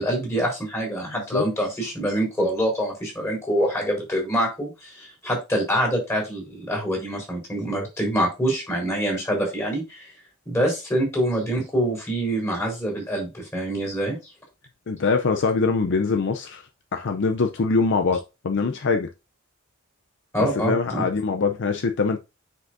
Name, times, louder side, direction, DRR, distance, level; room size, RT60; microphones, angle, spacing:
voice 1, 0.0-10.1 10.5-14.2 20.3-21.1, right 1 dB, 15° left, 3.9 m, -25 dB
voice 2, 1.1-1.5 14.9-16.6 16.9-19.1 20.4-22.2, left 4 dB, 55° left, 0.5 m, -23 dB
9.6 x 5.1 x 2.6 m
head